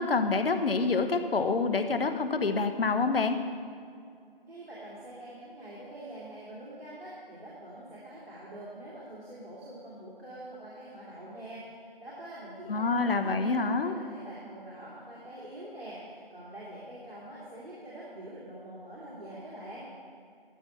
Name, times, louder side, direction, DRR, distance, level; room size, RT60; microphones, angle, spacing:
voice 1, 0.0-3.4 12.7-13.9, left 4 dB, 70° left, 9 dB, 0.8 m, -27 dB
voice 2, 4.5-19.9, right 1 dB, 75° right, -8 dB, 2.5 m, -45 dB
12.5 x 6.0 x 4.4 m, 2.3 s
figure-of-eight pair, 165°, 30 cm